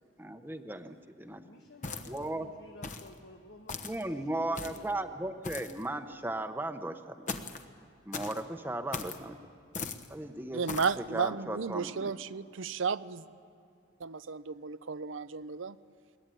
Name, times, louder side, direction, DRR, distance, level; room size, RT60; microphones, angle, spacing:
voice 1, 0.2-1.4 2.1-2.5 3.8-7.3 8.0-9.3 10.1-10.6 11.1-12.1, right 1 dB, 10° right, 8 dB, 0.9 m, -36 dB
voice 2, 1.3-5.2, left 2 dB, 60° left, 3 dB, 1.4 m, -54 dB
sound 1, 1.8-2.3 2.8-3.1 3.7-4.0 4.5-4.9 5.4-5.8 7.3-7.6 8.1-8.4 8.9-9.2 9.7-10.1 10.7-11.0, left 4 dB, 40° left, 1.0 m, -39 dB
voice 3, 10.5-13.3 14.0-15.8, right 5 dB, 90° right, 14 dB, 0.7 m, -33 dB
22.5 x 19.5 x 9.1 m, 2.3 s
head